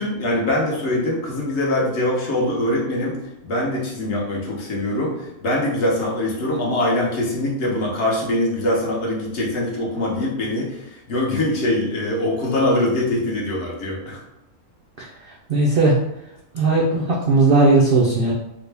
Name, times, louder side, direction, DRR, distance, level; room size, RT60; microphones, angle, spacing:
voice 1, 0.0-3.2 3.4-14.2, left 1 dB, 55° left, -3 dB, 1.0 m, -23 dB
voice 2, 15.5-16.0 16.5-18.3, right 3 dB, 65° right, -3 dB, 0.5 m, -17 dB
3.6 x 2.1 x 3.2 m, 0.88 s
omnidirectional pair, 1.5 m